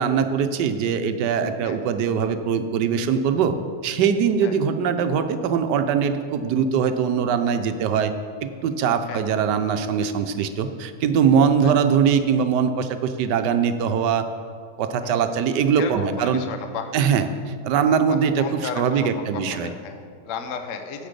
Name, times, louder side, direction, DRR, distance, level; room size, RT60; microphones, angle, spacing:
voice 1, 0.0-3.6 3.8-8.1 8.4-14.3 14.8-16.4 16.9-19.7, right 7 dB, 85° right, 9 dB, 1.3 m, -22 dB
voice 2, 15.8-16.9 18.1-21.1, left 6 dB, 60° left, 7 dB, 0.9 m, -34 dB
9.8 x 8.1 x 5.1 m, 2.1 s
omnidirectional pair, 1.8 m